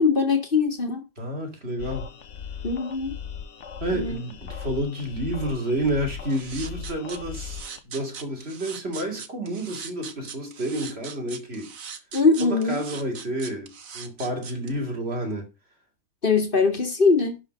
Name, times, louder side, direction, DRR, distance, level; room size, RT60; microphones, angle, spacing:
voice 1, 0.0-1.0 2.6-3.2 3.9-4.2 12.1-12.8 16.2-17.4, left 4 dB, 40° left, 2.2 m, -21 dB
voice 2, 1.2-2.1 3.8-11.7 12.4-15.5, right 1 dB, 45° right, 3.0 m, -30 dB
sound 1, 1.8-7.8, left 7 dB, 60° left, 1.3 m, -38 dB
sound 2, 6.3-14.7, right 7 dB, 70° right, 1.6 m, -40 dB
11.5 x 5.1 x 5.2 m
omnidirectional pair, 1.5 m